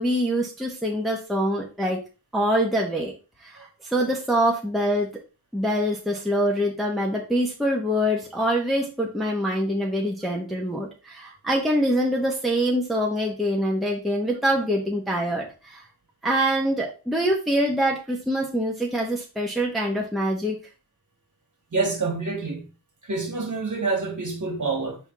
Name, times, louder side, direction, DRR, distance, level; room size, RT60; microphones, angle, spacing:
voice 1, 0.0-2.0 2.3-3.1 3.4-5.1 5.5-15.8 16.2-20.6, equal, ahead, 1.0 m, -24 dB
voice 2, 21.7-22.7 23.0-25.0, right 3 dB, 40° right, 1.8 m, -27 dB
5.5 x 3.6 x 4.7 m
wide cardioid pair, 160°, 46 cm